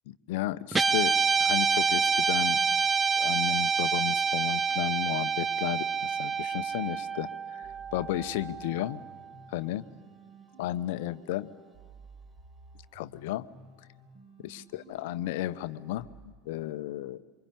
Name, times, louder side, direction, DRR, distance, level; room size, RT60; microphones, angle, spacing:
voice 1, 0.1-2.6 3.2-9.0 9.5-9.9 10.6-11.5 12.9-13.5 14.4-16.1 16.5-17.2, left 14 dB, 60° left, 15 dB, 0.9 m, -33 dB
Guitar, 0.7-9.2, right 6 dB, 15° right, 0.7 m, -27 dB
sound 1, 7.6-16.2, right 4 dB, 35° right, 6.5 m, -54 dB
27.0 x 24.5 x 8.5 m, 1.5 s
figure-of-eight pair, 75°, 0 cm